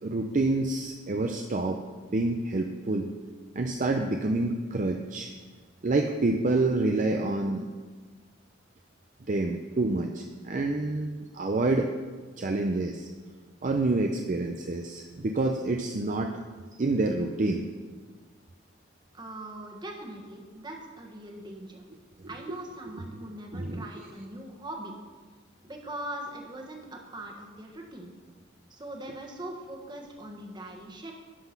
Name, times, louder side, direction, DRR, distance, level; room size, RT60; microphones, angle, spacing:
voice 1, 0.0-1.8 2.1-3.1 3.6-5.3 5.8-7.7 9.3-11.9 12.4-13.1 13.6-16.4 16.8-17.7 22.2-22.6 22.9-23.0 23.5-23.9, right 2 dB, 45° right, 4 dB, 0.5 m, -28 dB
voice 2, 19.1-21.8 22.3-24.9 25.6-28.1 28.7-31.1, right 1 dB, 25° right, 1 dB, 1.4 m, -41 dB
11.0 x 5.9 x 5.9 m, 1.4 s
head